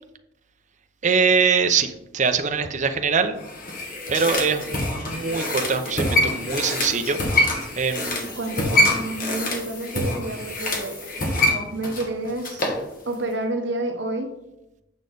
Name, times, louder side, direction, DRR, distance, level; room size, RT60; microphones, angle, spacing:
voice 1, 1.0-3.4 4.1-7.4 7.7-8.3, right 5 dB, 45° right, 7 dB, 0.7 m, -23 dB
sound 1, 3.4-12.8 13.1-13.2, left 1 dB, 50° left, 1.9 m, -25 dB
Wind chime, 6.6-11.2, left 1 dB, 20° left, 2.9 m, -44 dB
voice 2, 8.2-11.1 11.4-12.7 13.1-14.4, right 2 dB, 70° right, 5 dB, 1.1 m, -29 dB
8.8 x 6.3 x 4.0 m, 0.89 s
head